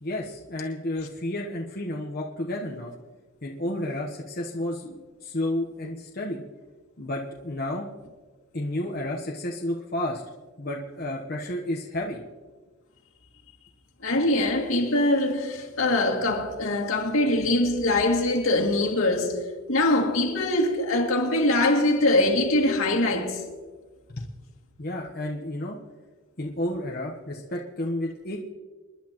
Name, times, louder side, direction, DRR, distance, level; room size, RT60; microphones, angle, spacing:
voice 1, 0.0-2.9 3.4-6.4 7.0-7.9 8.5-10.2 10.6-12.2 24.1-24.2 24.8-25.8 26.4-28.4, left 1 dB, 45° left, 1.1 m, -31 dB
voice 2, 14.0-23.4, left 2 dB, 75° left, 2.5 m, -23 dB
28.5 x 11.0 x 3.1 m
head